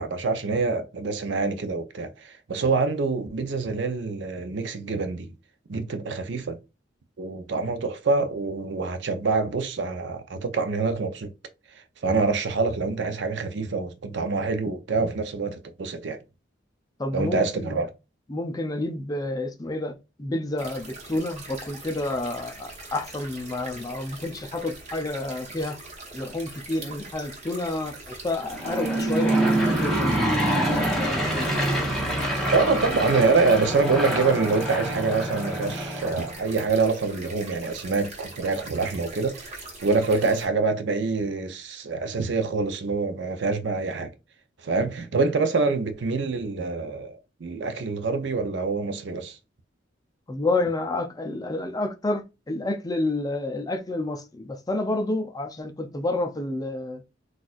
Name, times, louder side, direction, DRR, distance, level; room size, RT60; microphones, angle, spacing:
voice 1, 0.0-5.3 5.7-6.6 7.2-11.3 11.7-16.2 17.1-17.9 32.5-44.1 44.6-49.4, right 4 dB, 65° right, 0.6 m, -26 dB
voice 2, 17.0-17.8 18.3-25.8 26.1-31.5 50.3-57.0, left 2 dB, 20° left, 0.4 m, -29 dB
sound 1, 20.6-40.5, right 2 dB, 40° right, 1.1 m, -42 dB
Aircraft / Engine, 28.4-36.4, right 1 dB, ahead, 1.0 m, -26 dB
4.1 x 2.4 x 2.4 m
head